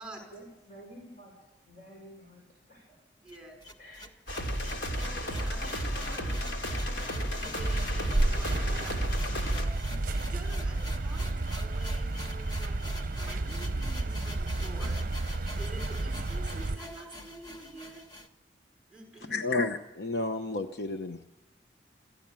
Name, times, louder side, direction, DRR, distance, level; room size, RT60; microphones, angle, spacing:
voice 1, 0.3-3.0 3.8-4.1 5.0-5.2, equal, 45° left, -1 dB, 5.6 m, -51 dB
voice 2, 3.2-3.6 4.9-15.0 15.5-18.1 18.9-19.5, right 2 dB, 5° right, 2 dB, 5.2 m, -48 dB
sound 1, 3.3-18.3, left 1 dB, 25° left, 1.5 m, -46 dB
sound 2, 4.3-9.7, equal, 85° left, 3.2 m, -33 dB
sound 3, 7.6-16.8, right 2 dB, 45° right, 0.7 m, -31 dB
voice 3, 19.3-21.2, left 3 dB, 65° left, 7 dB, 1.0 m, -31 dB
27.0 x 14.5 x 8.9 m, 1.1 s
head